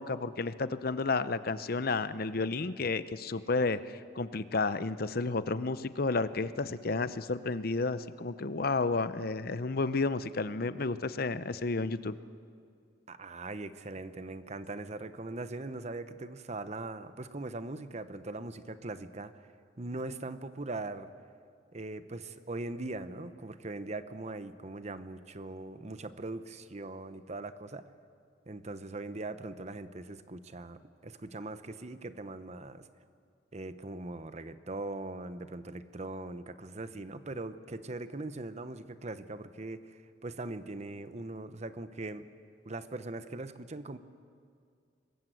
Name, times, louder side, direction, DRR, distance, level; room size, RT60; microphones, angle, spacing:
voice 1, 0.0-3.8 4.2-12.2, left 3 dB, 55° left, 14 dB, 0.7 m, -31 dB
voice 2, 13.1-19.5 19.8-21.1 21.7-27.8 28.5-32.9 33.5-42.3 42.6-44.0, right 2 dB, 35° right, 11 dB, 0.9 m, -41 dB
25.5 x 21.0 x 7.8 m, 2.2 s
head